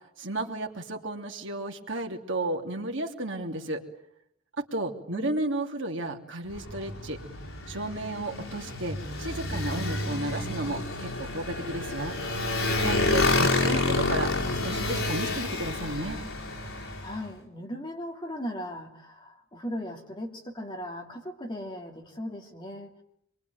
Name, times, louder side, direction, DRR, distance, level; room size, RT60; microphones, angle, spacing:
voice 1, 0.2-3.8 4.6-7.2 7.7-12.2 12.8-14.3 14.6-16.2, right 2 dB, 60° right, 2 dB, 3.0 m, -33 dB
Motorcycle, 6.5-17.2, left 2 dB, 85° left, 5.4 m, -29 dB
voice 2, 17.0-23.0, left 1 dB, 20° left, 2 dB, 3.1 m, -38 dB
26.0 x 23.0 x 9.4 m, 0.74 s
head